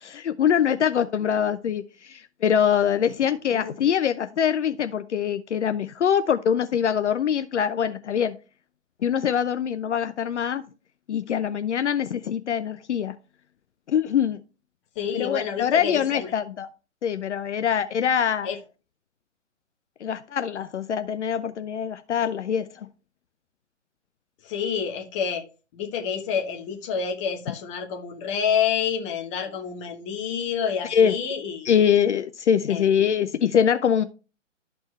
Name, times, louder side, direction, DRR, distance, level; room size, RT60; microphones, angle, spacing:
voice 1, 0.0-8.3 9.0-10.6 11.1-13.1 13.9-14.4 15.1-16.7 17.0-18.5 20.0-22.7 30.9-31.1 31.6-34.0, left 8 dB, 65° left, 0.6 m, -23 dB
voice 2, 3.2-3.7 14.9-16.3 18.4-18.6 24.4-25.4 25.7-31.7 32.7-33.0, left 7 dB, 25° left, 1.1 m, -28 dB
12.5 x 4.4 x 3.2 m
hypercardioid pair, 140°, 38 cm